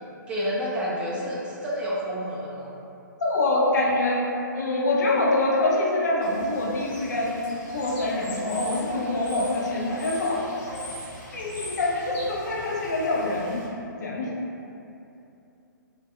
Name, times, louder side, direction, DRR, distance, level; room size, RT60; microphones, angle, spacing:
voice 1, 0.3-2.7, equal, 10° right, -6 dB, 0.3 m, -29 dB
voice 2, 3.2-4.2 4.5-10.8 11.3-13.6 14.0-14.4, left 2 dB, 60° left, -3 dB, 0.4 m, -25 dB
Bird / Water, 6.2-13.6, equal, 35° left, 1.3 m, -41 dB
2.7 x 2.2 x 2.2 m, 2.7 s
figure-of-eight pair, 130°, 11 cm